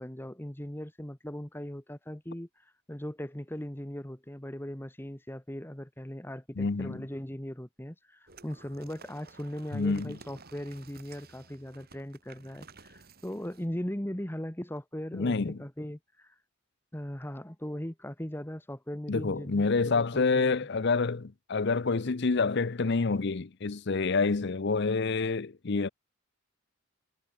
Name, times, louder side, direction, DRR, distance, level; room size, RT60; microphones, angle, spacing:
voice 1, 0.0-16.4 16.9-20.7, equal, 10° left, 1.3 m, -39 dB
voice 2, 6.6-7.1 9.7-10.2 15.1-15.6 19.1-25.9, left 4 dB, 55° left, 0.6 m, -28 dB
sound 1, 8.3-13.7, right 4 dB, 45° right, 3.5 m, -54 dB
head